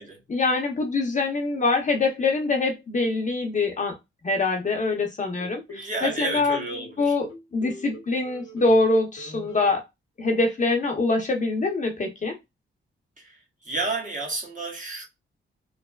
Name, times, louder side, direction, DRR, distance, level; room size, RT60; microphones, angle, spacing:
voice 1, 0.3-3.9 4.2-6.6 7.0-9.8 10.2-12.4, left 3 dB, 35° left, 0.7 m, -24 dB
sound 1, 5.4-6.2 6.7-8.9 9.2-9.7, right 1 dB, 70° left, 0.9 m, -43 dB
voice 2, 5.7-7.1 13.2-13.4 13.6-15.1, right 2 dB, 40° right, 1.1 m, -31 dB
3.1 x 2.0 x 2.2 m
cardioid pair, 90°, 21 cm